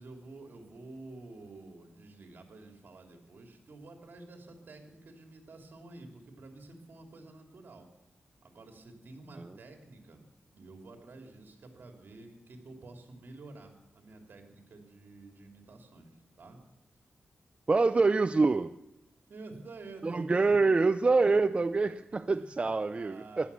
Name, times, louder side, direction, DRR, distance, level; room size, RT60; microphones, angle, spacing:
voice 1, 0.0-7.9 8.4-16.6 19.3-20.5 22.3-23.5, right 2 dB, 65° right, 4 dB, 3.1 m, -50 dB
voice 2, 17.7-18.7 20.0-23.5, right 3 dB, 35° right, 11 dB, 0.5 m, -26 dB
15.5 x 11.5 x 7.1 m, 0.93 s
wide cardioid pair, 90°, 4 cm